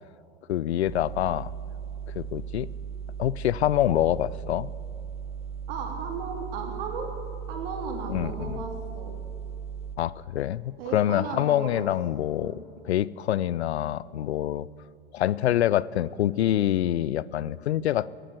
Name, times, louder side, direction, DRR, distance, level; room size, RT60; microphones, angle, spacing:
voice 1, 0.5-1.5 2.1-2.7 3.2-4.7 8.1-8.6 10.0-12.6 12.8-14.7 15.1-18.1, left 12 dB, 90° left, 21 dB, 0.5 m, -26 dB
sound 1, 0.9-10.0, right 7 dB, 20° right, 1.0 m, -37 dB
voice 2, 5.7-7.1 7.5-9.2 10.8-11.8 12.4-12.6, right 4 dB, 65° right, 3 dB, 3.3 m, -35 dB
14.5 x 10.0 x 9.0 m, 2.8 s
hypercardioid pair, 105°, 32 cm